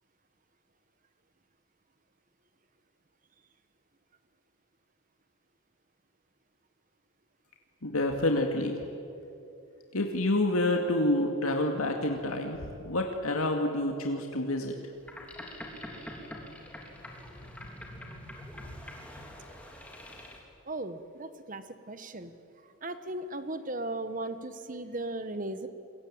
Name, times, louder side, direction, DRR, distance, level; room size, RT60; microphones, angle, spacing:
voice 1, 7.8-8.8 9.9-14.8, left 1 dB, 80° left, 2 dB, 2.3 m, -28 dB
Boat Water vehicle, 15.0-20.4, left 1 dB, 5° left, 3.3 m, -44 dB
voice 2, 20.7-22.3 22.8-25.7, right 2 dB, 35° right, 11 dB, 1.2 m, -37 dB
28.0 x 22.5 x 8.9 m, 2.6 s
head